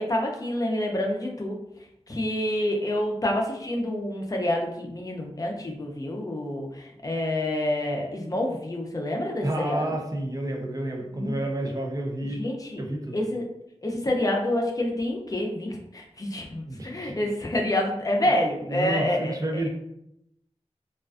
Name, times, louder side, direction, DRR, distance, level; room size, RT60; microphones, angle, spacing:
voice 1, 0.0-1.6 2.1-9.8 11.1-11.4 12.3-12.8 13.1-13.4 13.8-19.4, left 1 dB, 35° left, 0 dB, 0.5 m, -28 dB
voice 2, 9.4-12.4 12.8-13.2 16.7-17.2 18.7-19.7, right 1 dB, 35° right, 1 dB, 0.5 m, -30 dB
2.4 x 2.2 x 2.4 m, 0.80 s
wide cardioid pair, 65°, 11 cm